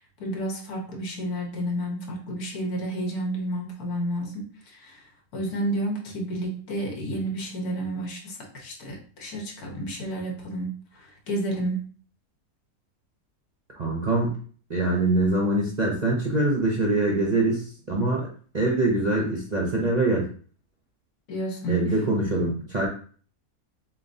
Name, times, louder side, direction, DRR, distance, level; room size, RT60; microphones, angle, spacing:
voice 1, 0.2-5.1 5.3-11.8 21.3-22.0, right 1 dB, 75° left, 1 dB, 1.6 m, -31 dB
voice 2, 13.8-14.4 14.7-18.3 18.5-20.3 21.7-22.9, right 2 dB, 40° right, -2 dB, 0.6 m, -24 dB
7.1 x 2.4 x 2.7 m, 0.43 s
omnidirectional pair, 1.6 m